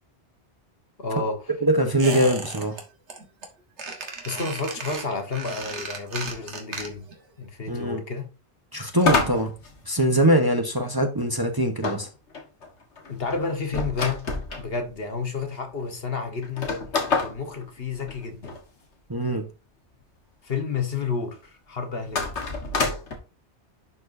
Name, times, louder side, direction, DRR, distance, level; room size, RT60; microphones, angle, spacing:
voice 1, 1.0-1.4 4.2-7.1 7.4-8.3 13.1-14.3 14.6-16.7 17.2-18.5 20.4-22.3, left 4 dB, 60° left, 1.5 m, -30 dB
voice 2, 1.6-2.8 7.7-8.0 8.7-9.5 9.9-12.1 19.1-19.4, right 1 dB, 20° right, 0.9 m, -22 dB
Squeak, 2.0-2.8 3.1-3.5 3.8-7.2 7.4-7.5, right 4 dB, 80° right, 1.8 m, -35 dB
sound 1, 9.0-10.5 11.8-14.7 15.4-15.5 15.7-15.8 16.4-18.6 22.0-23.2, left 3 dB, 80° left, 1.8 m, -27 dB
11.0 x 4.6 x 2.6 m
omnidirectional pair, 1.1 m